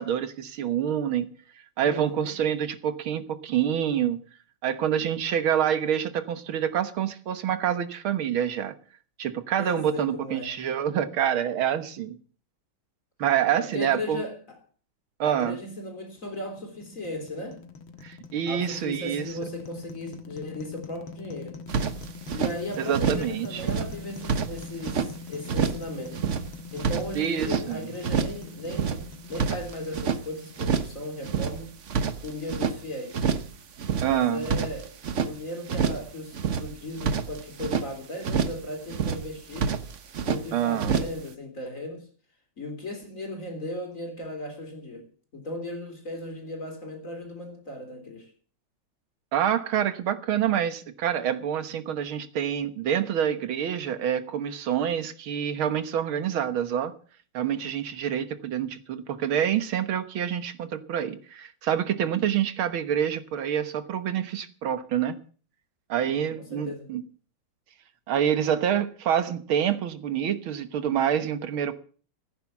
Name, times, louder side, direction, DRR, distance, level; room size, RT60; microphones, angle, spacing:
voice 1, 0.0-1.3 1.8-4.2 4.6-8.8 9.2-12.2 13.2-14.2 15.2-15.6 18.0-19.2 22.9-23.6 27.2-27.8 34.0-34.5 40.5-41.0 49.3-56.9 57.3-65.2 65.9-67.0 68.1-71.7, right 9 dB, 85° right, 2.1 m, -27 dB
voice 2, 1.8-2.3 9.6-10.5 13.5-14.6 15.2-17.6 18.5-21.6 22.3-26.2 26.7-31.8 32.2-33.2 33.9-34.9 35.2-39.8 40.2-42.1 42.6-45.1 45.3-48.3 66.0-66.9, left 1 dB, 40° left, 3.8 m, -36 dB
sound 1, 16.1-31.3, left 5 dB, 75° left, 2.2 m, -43 dB
sound 2, 21.7-22.5 22.9-23.3 23.6-25.1 25.5-25.9 26.1-27.7 28.0-28.4 28.7-30.2 30.6-31.0 31.2-32.8 33.1-33.5 33.8-35.3 35.7-36.1 36.3-37.9 38.2-38.6 38.9-39.3 39.5-40.4 40.8-41.2, right 6 dB, 45° right, 1.1 m, -28 dB
15.5 x 9.4 x 7.2 m
omnidirectional pair, 2.2 m